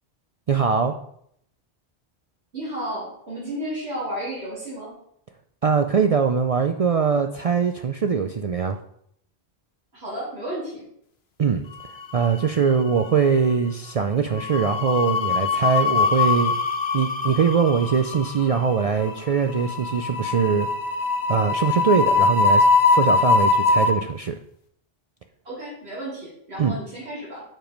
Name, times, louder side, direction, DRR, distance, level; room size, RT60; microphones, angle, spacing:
voice 1, 0.5-0.9 5.6-8.8 11.4-11.7 12.1-16.5 16.9-20.7 21.3-22.7 22.9-24.4 26.6-26.8, right 6 dB, 55° right, 6 dB, 0.4 m, -22 dB
voice 2, 2.5-4.9 9.9-10.8 25.4-27.4, right 1 dB, 75° right, -7 dB, 3.5 m, -32 dB
sound 1, 11.9-12.7 12.9-13.2 14.4-23.9, left 4 dB, 75° left, 1.1 m, -22 dB
7.5 x 5.1 x 5.2 m, 0.70 s
omnidirectional pair, 1.1 m